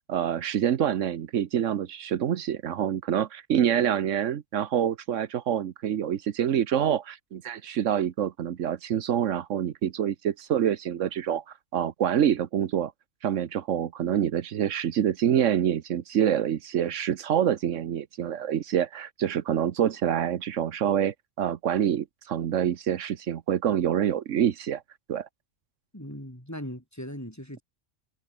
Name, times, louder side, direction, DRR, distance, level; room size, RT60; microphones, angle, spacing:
voice 1, 0.1-11.4 11.7-12.9 13.2-24.8 25.1-25.3, right 9 dB, 80° right, 1.2 m, -26 dB
voice 2, 25.9-27.6, equal, 15° left, 6.8 m, -39 dB
open air
omnidirectional pair, 1.3 m